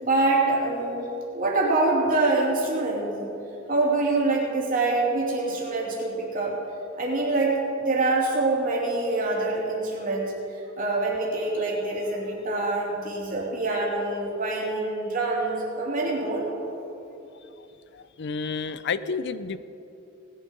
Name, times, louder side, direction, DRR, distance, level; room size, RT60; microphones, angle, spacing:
voice 1, 0.0-1.0 1.3-3.3 3.7-6.6 7.0-10.3 10.8-16.5, right 2 dB, 45° right, -3 dB, 3.0 m, -25 dB
voice 2, 17.9-19.6, left 5 dB, 55° left, 14 dB, 0.5 m, -30 dB
18.5 x 10.5 x 5.3 m, 2.9 s
head